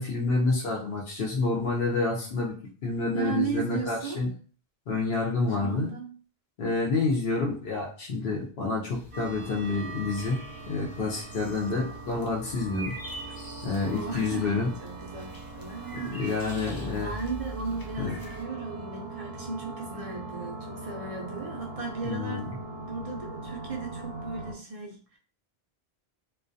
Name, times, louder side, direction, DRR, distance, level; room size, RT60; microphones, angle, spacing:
voice 1, 0.0-2.5 2.8-4.3 4.9-5.9 6.6-10.4 10.7-12.9 13.6-14.7 16.1-17.1 18.0-18.2 22.0-22.5, left 3 dB, 70° left, -4 dB, 0.8 m, -28 dB
voice 2, 3.1-4.2 5.6-6.1 13.7-14.5 14.8-22.5 22.9-25.2, right 4 dB, 50° right, 0 dB, 0.4 m, -36 dB
sound 1, 8.9-18.4, equal, 35° left, 0.3 m, -44 dB
sound 2, 9.1-24.5, right 2 dB, 80° right, 0.8 m, -41 dB
2.2 x 2.2 x 2.5 m, 0.40 s
omnidirectional pair, 1.0 m